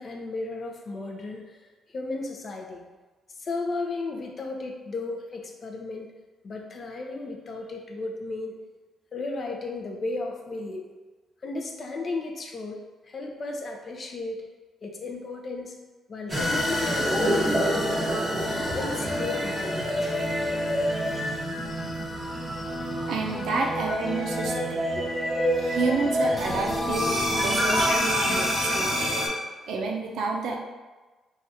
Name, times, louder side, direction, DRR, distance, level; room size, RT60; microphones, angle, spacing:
voice 1, 0.0-1.6 1.9-2.8 3.4-6.1 6.4-8.6 9.1-10.9 11.4-14.4 14.8-15.8 16.1-18.0 18.4-20.3 24.9-25.1, left 3 dB, 45° left, 2 dB, 0.4 m, -34 dB
sound 1, 16.3-29.3, equal, 10° right, 0.8 m, -27 dB
voice 2, 23.0-24.8 25.5-27.1 27.4-28.9 29.7-30.6, right 3 dB, 75° right, 1 dB, 0.4 m, -29 dB
3.2 x 2.3 x 2.7 m, 1.2 s
cardioid pair, 90°, 0 cm